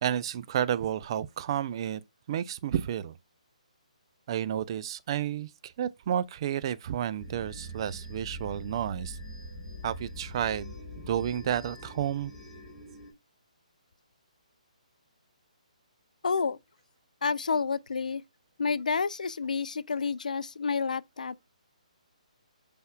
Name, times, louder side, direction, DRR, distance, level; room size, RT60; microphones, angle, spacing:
voice 1, 0.0-2.0 2.3-3.1 4.3-9.2 9.8-12.3, right 10 dB, 40° right, 0.3 m, -31 dB
sound 1, 7.2-13.1, equal, 5° left, 1.2 m, -43 dB
voice 2, 16.2-16.6 17.2-18.2 18.6-21.3, left 5 dB, 80° left, 0.3 m, -29 dB
5.4 x 3.5 x 2.2 m
hypercardioid pair, 150°, 4 cm